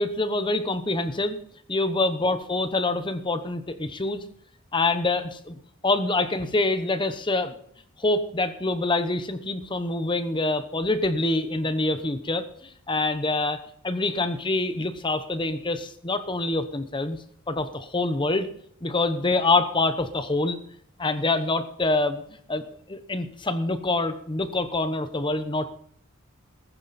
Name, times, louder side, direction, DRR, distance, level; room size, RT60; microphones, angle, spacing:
voice 1, 0.0-1.4 1.7-4.2 4.7-5.5 5.8-7.6 8.0-17.2 17.5-18.5 18.8-20.6 21.0-22.2 22.5-22.6 22.9-25.7, left 2 dB, 20° left, 10 dB, 0.9 m, -26 dB
19.5 x 9.9 x 4.2 m, 0.64 s
head